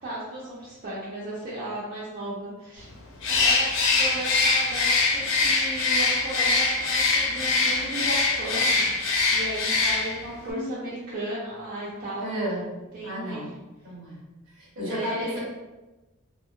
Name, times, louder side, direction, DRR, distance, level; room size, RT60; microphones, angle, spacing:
voice 1, 0.0-2.9 3.2-8.9 9.3-12.3 12.9-13.4 14.8-15.4, right 1 dB, 40° right, -8 dB, 0.5 m, -35 dB
Bird, 3.2-10.3, left 3 dB, 60° left, 0.5 m, -23 dB
voice 2, 12.2-12.6 13.0-13.5 13.8-14.2 14.5-15.4, equal, 60° right, -6 dB, 1.0 m, -33 dB
2.9 x 2.1 x 2.2 m, 1.1 s
head